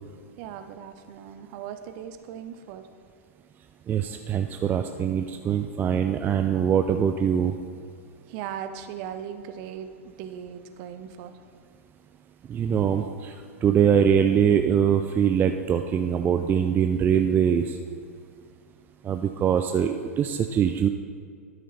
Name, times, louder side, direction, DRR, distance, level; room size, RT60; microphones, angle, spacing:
voice 1, 0.4-2.9 8.3-11.4, right 9 dB, 45° right, 9 dB, 0.7 m, -38 dB
voice 2, 3.9-7.5 12.5-13.3 13.6-17.8 19.0-20.9, right 8 dB, 25° right, 7 dB, 0.4 m, -23 dB
12.0 x 6.3 x 4.1 m, 2.2 s
hypercardioid pair, 105°, 8 cm